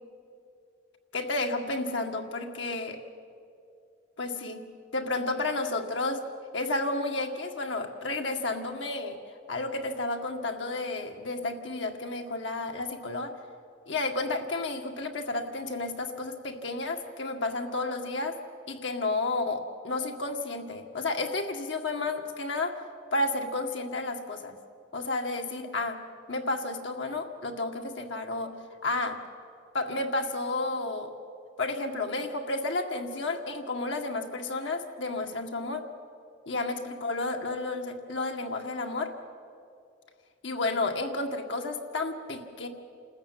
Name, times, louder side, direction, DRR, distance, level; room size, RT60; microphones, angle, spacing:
voice 1, 1.1-3.0 4.2-4.6 4.9-6.2 6.5-9.2 9.5-13.3 13.9-18.4 18.7-22.8 23.1-24.5 24.9-26.0 26.3-28.5 28.8-29.2 29.7-31.1 31.6-35.8 36.5-39.1 40.4-42.7, left 2 dB, 90° left, 4 dB, 2.0 m, -31 dB
28.0 x 14.0 x 9.5 m, 2.4 s
head